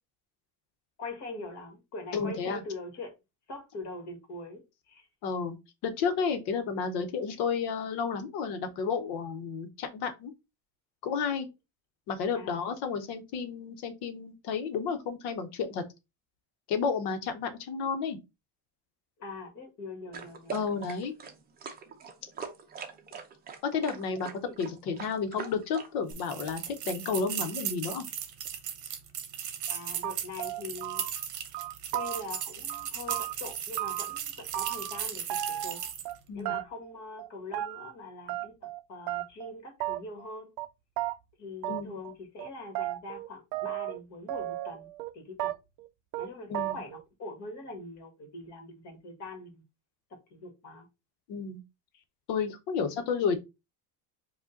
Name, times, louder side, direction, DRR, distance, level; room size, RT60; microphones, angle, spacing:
voice 1, 1.0-3.1 3.5-4.6 4.9-5.1 12.3-12.6 19.2-20.7 24.4-24.6 29.7-31.0 31.9-35.8 36.3-40.5 41.4-44.9 45.1-45.5 46.2-49.6 50.3-50.9 52.7-53.0, left 2 dB, 40° left, 1.7 m, -43 dB
voice 2, 2.1-2.6 5.2-5.6 5.8-10.3 11.0-11.5 12.1-15.8 16.7-18.2 20.5-21.1 23.6-24.3 24.6-28.1 36.3-36.6 41.7-41.9 46.5-46.8 51.3-51.6 52.3-53.4, left 5 dB, 70° left, 1.1 m, -31 dB
sound 1, 20.1-26.1, right 6 dB, 20° right, 0.6 m, -42 dB
sound 2, 26.1-36.2, right 9 dB, 45° right, 0.9 m, -37 dB
sound 3, 29.7-29.8 30.0-31.3 31.5-32.4 32.7-34.2 34.5-35.0 35.3-36.2 36.5-36.9 37.2-37.9 38.3-38.8 39.1-39.5 39.8-40.3 40.6-40.7 41.0-41.2 41.6-42.1 42.4-44.0 44.3-45.1 45.4-45.9 46.1-46.3 46.5-47.0, right 15 dB, 65° right, 0.5 m, -34 dB
5.0 x 2.5 x 3.8 m
cardioid pair, 170°, 42 cm